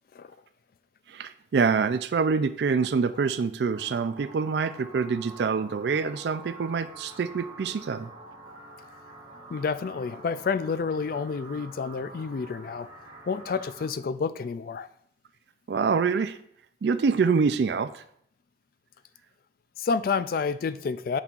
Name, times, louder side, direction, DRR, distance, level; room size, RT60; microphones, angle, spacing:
voice 1, 1.1-8.1 15.7-16.4 16.8-18.0, right 5 dB, 65° right, 12 dB, 0.4 m, -26 dB
sound 1, 3.7-13.8, right 2 dB, 20° right, 2.9 m, -46 dB
voice 2, 9.5-12.9 13.3-14.9 19.8-21.2, left 5 dB, 50° left, 14 dB, 0.3 m, -29 dB
8.8 x 6.1 x 2.5 m, 0.69 s
head